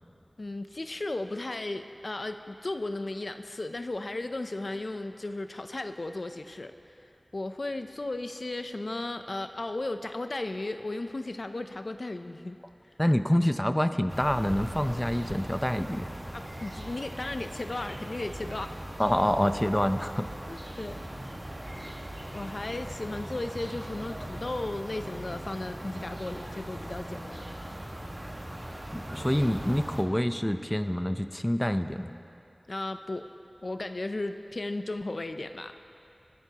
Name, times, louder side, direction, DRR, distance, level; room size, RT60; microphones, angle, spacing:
voice 1, 0.4-6.7 7.3-12.6 16.3-18.8 20.5-21.0 21.8-21.9 22.3-27.4 32.7-33.2 33.6-35.7, left 2 dB, 65° left, 8 dB, 0.5 m, -35 dB
voice 2, 13.0-16.1 19.0-20.3 28.9-32.1, equal, 10° left, 8 dB, 0.6 m, -26 dB
sound 1, 14.1-30.0, right 1 dB, 25° right, 1.6 m, -40 dB
28.5 x 12.0 x 2.9 m, 2.7 s
wide cardioid pair, 50°, 0 cm